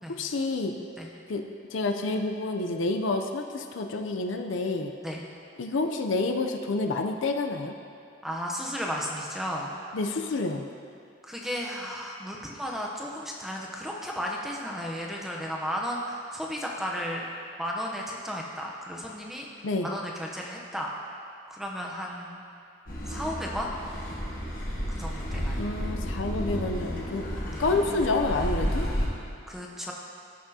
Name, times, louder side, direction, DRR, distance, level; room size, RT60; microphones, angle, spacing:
voice 1, 0.1-0.8 1.3-4.9 5.6-7.7 9.9-10.6 19.6-19.9 25.6-27.2 27.6-28.9, left 3 dB, 70° left, 4 dB, 0.5 m, -28 dB
voice 2, 8.2-9.8 11.2-17.2 17.6-19.5 19.8-20.9 21.5-22.4 23.1-23.7 24.9-25.7 27.5-27.6 29.5-29.9, equal, ahead, -2 dB, 0.7 m, -34 dB
Car passing by / Accelerating revving vroom, 22.9-29.1, equal, 45° left, 1.4 m, -32 dB
15.0 x 6.0 x 2.8 m, 2.4 s
head